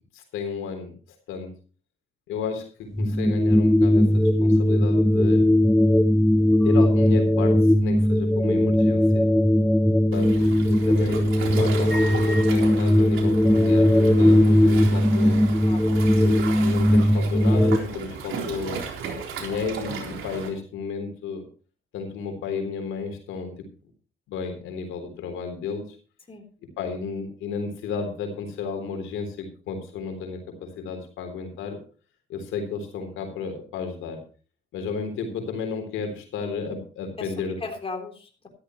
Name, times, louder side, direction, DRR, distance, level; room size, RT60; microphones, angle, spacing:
voice 1, 0.1-0.9 1.3-1.5 2.3-2.7 3.0-5.5 6.6-9.3 10.1-15.4 16.1-18.8 19.4-21.4 21.9-23.7 24.3-26.0 26.8-31.8 32.3-34.2 34.7-37.6, left 5 dB, 90° left, 5 dB, 3.7 m, -33 dB
sound 1, 2.9-17.8, left 1 dB, 5° left, 0.8 m, -19 dB
Waves surf, 10.1-20.5, right 5 dB, 85° right, 3.9 m, -35 dB
voice 2, 15.5-16.0 17.9-18.0 26.3-26.4 37.2-37.3 37.6-38.5, left 3 dB, 30° left, 4 dB, 3.7 m, -37 dB
14.5 x 13.5 x 3.1 m, 0.38 s
cardioid pair, 90°, 20 cm